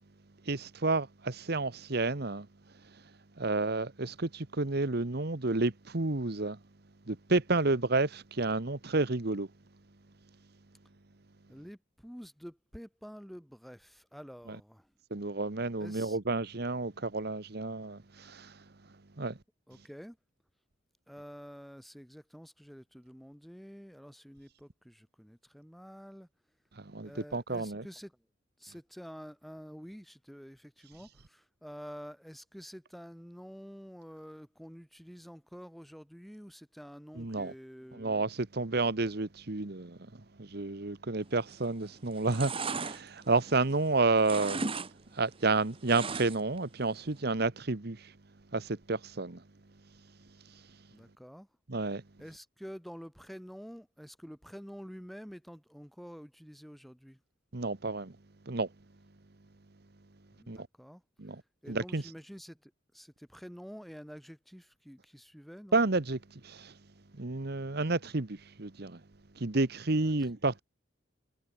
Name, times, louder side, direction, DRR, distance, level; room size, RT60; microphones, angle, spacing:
voice 1, 0.4-2.5 2.9-3.0 3.4-6.6 7.1-9.5 15.1-18.6 19.2-19.4 26.7-27.8 37.2-37.5 37.9-44.6 45.1-48.1 48.5-49.4 50.5-50.6 51.7-52.0 57.5-58.1 58.5-58.7 60.5-60.7 61.2-61.4 61.7-62.0 65.7-66.7 67.1-69.0 69.3-70.6, right 3 dB, 55° right, 1.2 m, -31 dB
voice 2, 11.5-14.9 15.8-16.2 19.7-20.2 21.1-26.3 27.0-28.3 28.6-38.3 50.9-51.5 52.2-57.2 60.3-65.8 69.9-70.3, equal, ahead, 5.8 m, -49 dB
sound 1, 41.4-41.8 42.1-43.9 44.2-44.9 45.2-46.6 46.9-47.0, right 4 dB, 30° right, 1.3 m, -37 dB
head